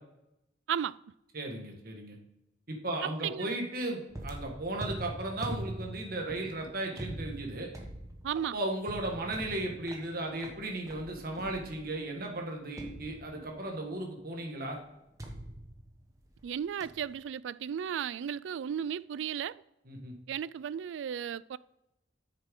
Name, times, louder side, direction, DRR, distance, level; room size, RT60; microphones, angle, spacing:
voice 1, 0.7-1.0 3.0-3.5 8.2-8.6 16.4-19.6 20.3-21.6, right 8 dB, 85° right, 0.3 m, -35 dB
voice 2, 1.3-2.2 2.7-7.7 8.5-14.8 19.9-20.1, right 2 dB, 50° right, 1.7 m, -36 dB
sound 1, 4.1-12.0 12.8-13.8 15.2-16.5 16.8-17.1, right 1 dB, 20° right, 1.1 m, -43 dB
8.9 x 6.7 x 3.8 m
head